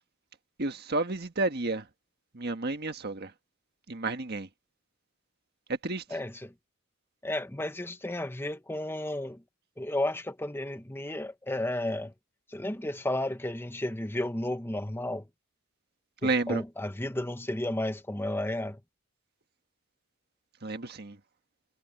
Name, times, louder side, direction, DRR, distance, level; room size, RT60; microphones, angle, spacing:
voice 1, 0.6-1.8 2.3-3.3 3.9-4.5 5.8-6.0 16.2-16.6 20.6-21.2, right 3 dB, 45° right, 1.6 m, -31 dB
voice 2, 6.1-6.5 7.2-9.4 9.8-12.1 12.5-15.3 16.2-18.8, left 1 dB, 10° left, 0.9 m, -33 dB
head